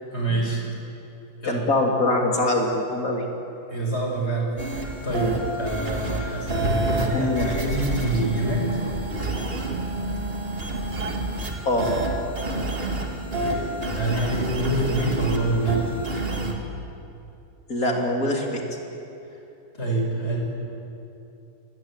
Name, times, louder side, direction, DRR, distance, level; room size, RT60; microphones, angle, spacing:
voice 1, 0.1-0.7 1.4-1.6 3.7-8.7 13.3-15.8 19.8-20.4, right 2 dB, 40° left, -1 dB, 6.5 m, -26 dB
voice 2, 1.4-3.2 5.1-5.3 7.1-7.5 11.7-11.9 17.7-18.6, left 2 dB, 60° left, 1 dB, 3.8 m, -24 dB
sound 1, 4.6-16.5, right 2 dB, 35° right, 2.5 m, -28 dB
27.0 x 21.0 x 9.0 m, 2.8 s
omnidirectional pair, 1.7 m